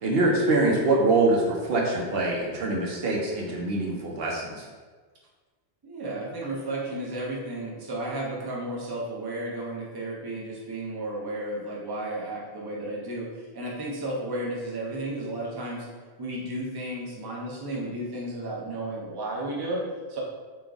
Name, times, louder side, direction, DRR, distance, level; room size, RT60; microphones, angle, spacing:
voice 1, 0.0-4.7, right 2 dB, 65° right, -2 dB, 0.8 m, -24 dB
voice 2, 5.8-15.9 16.2-20.2, right 1 dB, 25° right, -4 dB, 0.6 m, -33 dB
3.7 x 2.5 x 3.4 m, 1.4 s
omnidirectional pair, 1.2 m